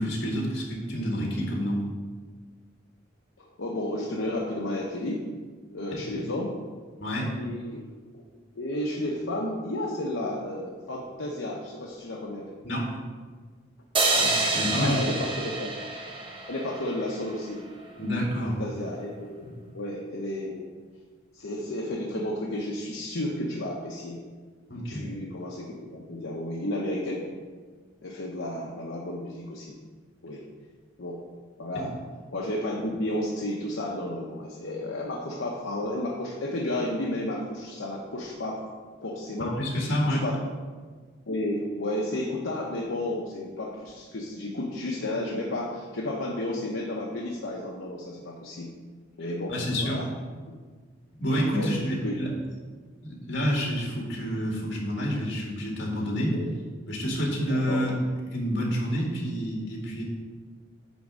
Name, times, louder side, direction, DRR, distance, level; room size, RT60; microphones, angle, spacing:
voice 1, 0.0-1.8 5.9-6.0 7.0-7.3 12.6-13.0 14.2-15.0 18.0-18.6 19.4-19.5 24.7-25.0 31.7-31.9 39.4-40.2 49.5-50.0 51.2-52.3 53.0-56.4 56.9-57.9 58.3-60.0, equal, 60° left, -2 dB, 2.1 m, -28 dB
voice 2, 3.4-5.2 5.7-6.6 7.3-7.8 8.1-8.2 8.5-12.5 14.7-15.8 16.5-17.7 18.4-19.5 19.7-20.7 21.3-24.2 24.7-27.3 28.0-29.8 30.2-30.4 31.0-31.2 31.6-31.9 32.3-38.7 39.0-39.6 40.1-40.4 41.3-48.7 49.2-49.6 49.8-50.1 50.5-50.6 51.5-52.2 56.3-56.5 57.4-57.8, left 1 dB, 75° left, -2 dB, 0.9 m, -32 dB
sound 1, 13.9-17.3, right 3 dB, 25° right, 0.8 m, -27 dB
9.3 x 3.5 x 6.2 m, 1.5 s
head